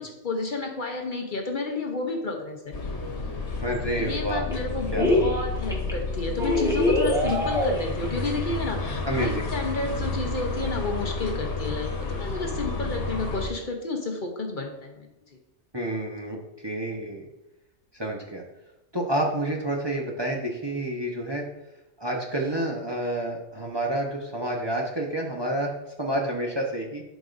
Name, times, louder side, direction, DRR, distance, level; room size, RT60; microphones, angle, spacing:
voice 1, 0.0-2.7 4.0-15.1, left 3 dB, 50° left, 3 dB, 0.9 m, -31 dB
sound 1, 2.7-13.5, left 3 dB, 75° left, 1.4 m, -31 dB
sound 2, 3.6-3.7 3.9-4.5 4.9-5.4 5.7-5.9 6.4-8.1 8.4-8.5 8.7-8.8, left 1 dB, 5° right, 1.3 m, -24 dB
voice 2, 3.6-4.4 4.9-5.3 9.0-9.5 15.7-17.2 17.9-18.4 18.9-21.5 22.0-25.7 26.0-27.0, right 1 dB, 25° right, -1 dB, 0.8 m, -29 dB
11.5 x 5.1 x 2.5 m, 0.95 s
omnidirectional pair, 1.2 m